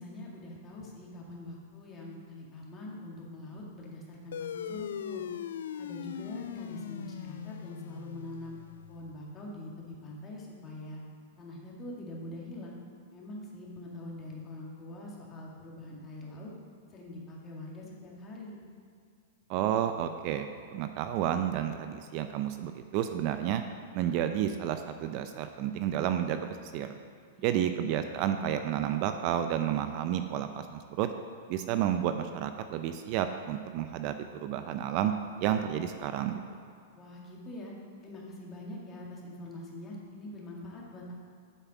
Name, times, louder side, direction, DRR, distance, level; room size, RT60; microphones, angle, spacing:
voice 1, 0.0-5.2 5.8-8.6 8.9-11.0 11.4-12.7 13.1-16.5 16.9-18.6 27.3-27.7 36.9-37.7 38.0-41.1, left 1 dB, 25° left, -3 dB, 2.1 m, -44 dB
sound 1, 4.3-9.2, left 9 dB, 80° left, 0.3 m, -40 dB
voice 2, 19.5-23.6 23.9-26.9 27.4-31.1 31.5-34.1 34.4-35.1 35.4-36.4, right 10 dB, 45° right, 8 dB, 0.5 m, -31 dB
8.1 x 5.6 x 6.0 m, 2.3 s
hypercardioid pair, 135°, 0 cm